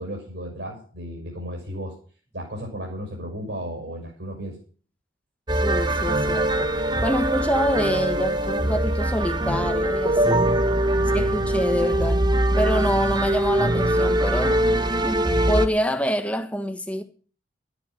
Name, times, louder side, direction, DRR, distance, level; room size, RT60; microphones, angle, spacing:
voice 1, 0.0-2.0 2.3-4.6 10.9-11.5, equal, 60° right, 6.4 m, -34 dB
sound 1, 5.5-15.7, right 1 dB, 20° right, 0.8 m, -22 dB
voice 2, 5.6-6.7 7.0-10.5 11.1-12.2 12.5-14.6 15.0-17.0, equal, 5° left, 1.3 m, -26 dB
13.5 x 10.0 x 6.4 m
head